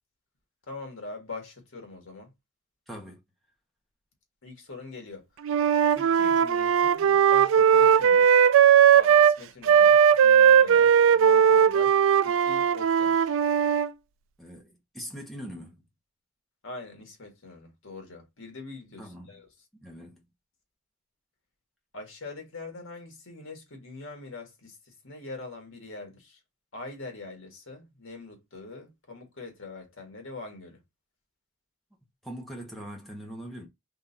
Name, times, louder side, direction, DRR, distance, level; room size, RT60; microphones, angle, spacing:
voice 1, 0.7-2.3 4.4-5.3 5.9-8.4 8.9-13.4 16.6-19.5 21.9-26.4 26.7-30.8, left 3 dB, 75° left, 1.6 m, -43 dB
voice 2, 2.9-3.2 14.4-15.8 19.0-19.4 19.8-20.2 32.2-33.7, equal, ahead, 1.2 m, -41 dB
Wind instrument woodwind instrument, 5.4-9.4 9.7-13.9, right 8 dB, 70° right, 0.3 m, -19 dB
3.7 x 3.3 x 2.7 m
head